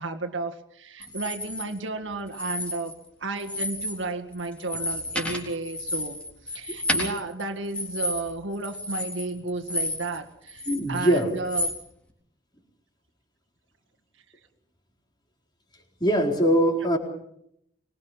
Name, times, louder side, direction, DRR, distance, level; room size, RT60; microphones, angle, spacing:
voice 1, 0.0-11.7, right 2 dB, 85° right, 5 dB, 2.0 m, -33 dB
sound 1, 1.0-1.6 2.3-3.1 3.4-4.0 4.3-10.2 10.5-11.8, left 1 dB, 5° left, 3.8 m, -31 dB
voice 2, 10.7-11.3 16.0-17.0, equal, 25° left, 1 dB, 4.3 m, -22 dB
24.5 x 21.0 x 5.7 m, 0.73 s
head